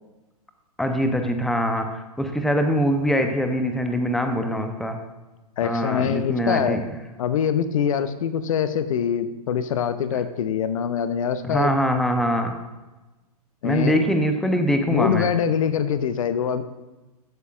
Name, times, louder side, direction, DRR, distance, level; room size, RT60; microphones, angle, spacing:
voice 1, 0.8-5.0 5.6-6.8 11.5-12.5 13.6-15.3, equal, ahead, 6 dB, 0.7 m, -23 dB
voice 2, 5.6-6.8 7.2-11.7 13.6-14.0 14.9-16.6, left 8 dB, 60° left, 12 dB, 0.7 m, -24 dB
13.5 x 8.2 x 2.4 m, 1.1 s
figure-of-eight pair, 110°, 20 cm